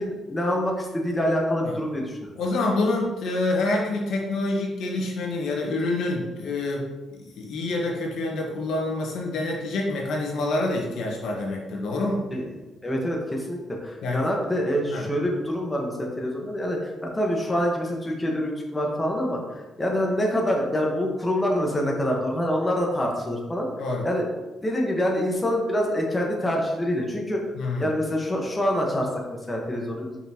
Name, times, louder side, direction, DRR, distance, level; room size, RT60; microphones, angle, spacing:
voice 1, 0.0-2.3 12.3-12.4 12.8-19.4 19.8-23.7 24.0-24.3 24.6-27.4 27.8-30.2, equal, 15° left, -1 dB, 1.4 m, -26 dB
voice 2, 2.4-6.8 7.1-12.2 14.0-14.2 14.9-15.1 23.8-24.0 27.5-27.9, left 2 dB, 75° left, -1 dB, 1.6 m, -27 dB
5.8 x 5.6 x 3.1 m, 1.1 s
cardioid pair, 90°, 0 cm